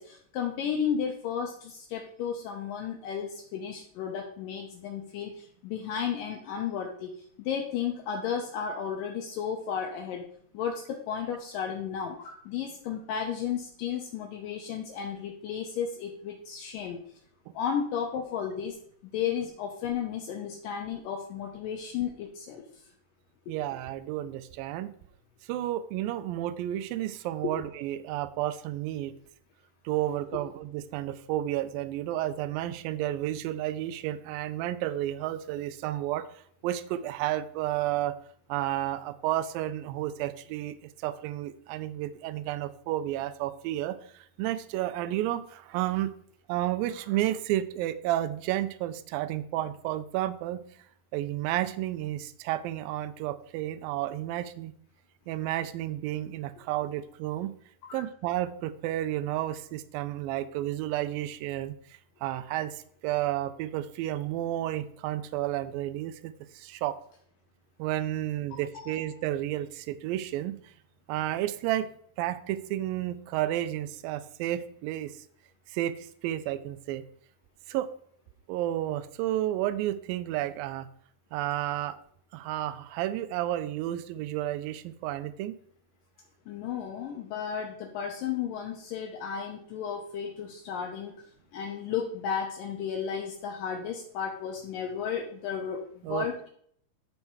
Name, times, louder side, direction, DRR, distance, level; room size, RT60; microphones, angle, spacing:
voice 1, 0.0-7.1 7.4-10.2 10.5-17.0 17.5-18.8 19.1-22.6 23.5-23.6 57.8-58.0 68.7-69.0 86.5-91.2 91.5-96.5, left 7 dB, 75° left, 1 dB, 2.5 m, -33 dB
voice 2, 23.5-24.9 25.5-29.1 29.9-38.2 38.5-46.1 46.5-50.6 51.1-54.7 55.3-57.5 57.9-61.7 62.2-67.0 67.8-70.7 71.1-71.9 72.2-75.2 75.7-77.0 77.7-77.9 78.5-80.9 81.3-82.0 82.3-85.6 96.0-96.5, right 13 dB, 85° right, 12 dB, 2.3 m, -31 dB
10.5 x 4.6 x 4.7 m, 0.62 s
omnidirectional pair, 4.1 m